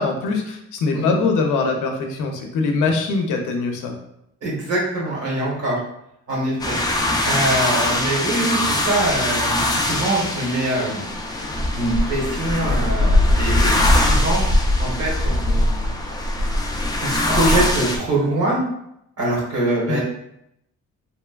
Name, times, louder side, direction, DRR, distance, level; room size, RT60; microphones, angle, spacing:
voice 1, 0.0-3.9 19.9-20.0, left 4 dB, 80° left, 3 dB, 0.5 m, -22 dB
voice 2, 4.4-5.8 6.3-6.8 7.2-11.1 11.7-14.4 14.8-15.9 16.5-18.6 19.2-20.0, right 1 dB, 55° right, -4 dB, 1.3 m, -24 dB
sound 1, 6.6-18.0, left 1 dB, 15° left, 0.3 m, -21 dB
3.0 x 2.2 x 2.2 m, 0.78 s
cardioid pair, 90°, 30 cm